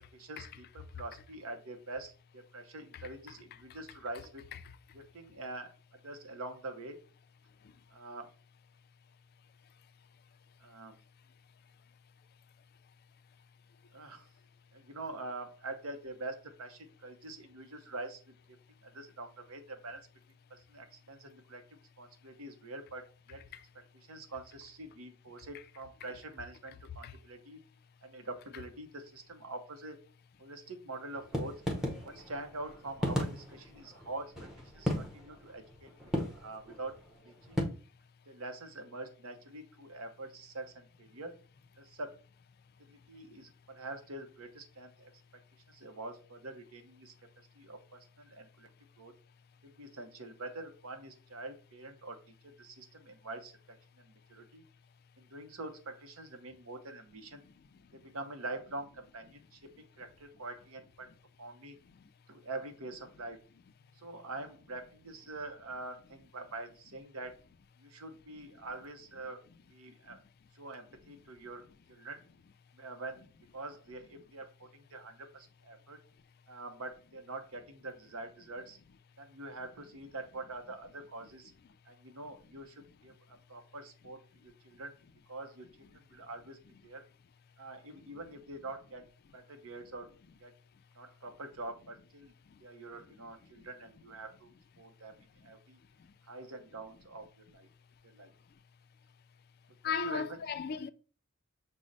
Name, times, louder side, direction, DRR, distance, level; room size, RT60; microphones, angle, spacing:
voice 1, 0.1-4.4 4.9-5.8 6.0-7.0 7.9-8.3 10.6-11.0 13.9-14.3 14.7-18.2 18.8-20.0 20.5-21.6 22.0-23.5 24.1-27.6 28.0-30.0 30.4-31.6 32.0-36.9 37.2-37.6 38.3-41.4 41.8-42.2 42.8-45.1 45.7-47.1 47.6-48.7 49.0-49.1 49.6-54.6 55.2-57.4 57.9-61.1 61.4-61.8 62.3-63.4 64.0-67.4 67.8-69.4 69.7-70.2 70.5-72.2 72.7-76.0 76.5-78.8 79.2-81.5 81.8-84.9 85.3-86.6 86.8-87.0 87.6-90.1 90.4-90.5 90.9-92.3 92.6-94.5 94.8-95.8 96.3-97.7 98.0-98.3 100.0-100.4, right 2 dB, 70° right, 0.7 m, -45 dB
sound 1, 31.2-37.6, left 1 dB, ahead, 0.7 m, -35 dB
voice 2, 99.8-100.9, left 6 dB, 45° left, 0.3 m, -36 dB
6.2 x 2.1 x 3.9 m
head